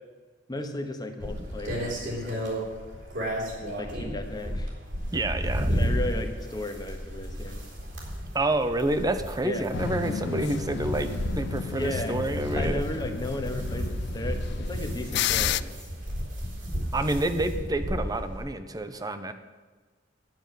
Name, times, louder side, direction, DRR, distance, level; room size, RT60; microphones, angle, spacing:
voice 1, 0.5-2.4 3.8-4.7 5.6-7.6 9.4-9.7 11.7-15.8, left 1 dB, 20° left, 5 dB, 1.2 m, -35 dB
sound 1, 1.2-18.4, equal, 70° right, 4.0 m, -33 dB
voice 2, 5.1-5.7 8.3-12.8 16.9-19.3, right 2 dB, 20° right, 10 dB, 0.8 m, -28 dB
sound 2, 9.7-15.6, left 9 dB, 60° left, 0.3 m, -32 dB
10.5 x 6.9 x 9.2 m, 1.4 s
head